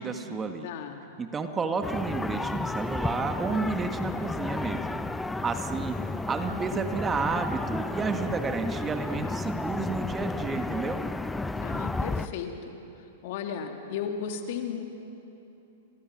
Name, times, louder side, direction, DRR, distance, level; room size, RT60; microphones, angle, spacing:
voice 1, 0.0-0.7 1.2-5.0 5.4-6.0 6.3-11.0, right 4 dB, 20° right, 6 dB, 1.8 m, -31 dB
voice 2, 0.6-1.0 11.6-12.7 13.2-14.8, left 7 dB, 55° left, 3 dB, 3.1 m, -35 dB
sound 1, 1.8-12.3, left 2 dB, 5° left, 0.9 m, -32 dB
30.0 x 27.0 x 6.3 m, 2.9 s
hypercardioid pair, 105°, 0 cm